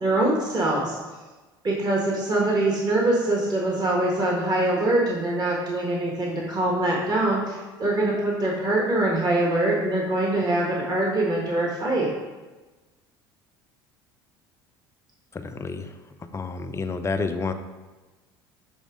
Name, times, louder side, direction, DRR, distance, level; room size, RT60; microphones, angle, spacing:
voice 1, 0.0-1.0 1.6-12.1, right 2 dB, 35° right, -3 dB, 1.3 m, -23 dB
voice 2, 15.3-17.5, left 4 dB, 25° left, 8 dB, 0.5 m, -30 dB
6.3 x 3.4 x 4.8 m, 1.2 s
hypercardioid pair, 70°, 12 cm